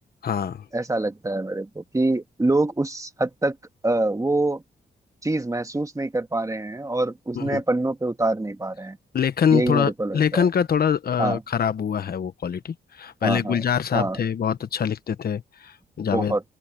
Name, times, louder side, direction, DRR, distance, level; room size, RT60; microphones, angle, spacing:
voice 1, 0.2-0.6 7.3-7.6 9.1-16.3, left 7 dB, 60° left, 1.2 m, -24 dB
voice 2, 0.7-3.6 3.8-4.6 5.2-9.0 9.5-10.5 11.2-11.4 13.2-13.6 13.9-14.2 16.1-16.4, right 2 dB, 20° right, 1.9 m, -25 dB
open air
cardioid pair, 70°, 18 cm